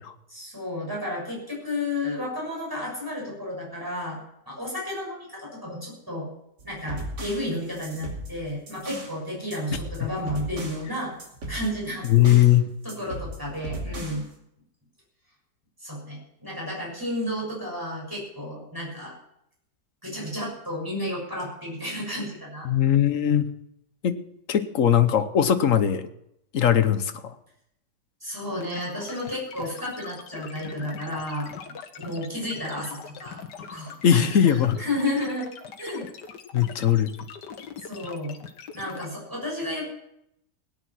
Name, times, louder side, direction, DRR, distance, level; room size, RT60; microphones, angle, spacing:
voice 1, 0.3-4.2 4.5-6.3 6.6-11.1 11.5-12.1 12.8-14.3 15.8-19.2 20.0-22.7 28.2-31.5 32.0-33.4 33.7-35.5 35.8-36.0 37.8-38.4 38.7-39.9, left 1 dB, 10° right, -3 dB, 6.8 m, -32 dB
sound 1, 6.6-9.2 9.5-10.9 11.2-12.6 12.9-14.3, right 1 dB, 80° right, 3.2 m, -37 dB
voice 2, 12.0-12.7 22.6-23.5 24.0-24.2 24.5-26.1 26.5-27.3 34.0-34.8 36.5-37.1, left 10 dB, 55° left, 11 dB, 1.2 m, -20 dB
sound 2, 28.6-39.0, left 7 dB, 80° left, 1.8 m, -42 dB
17.0 x 10.0 x 6.2 m, 0.78 s
omnidirectional pair, 1.8 m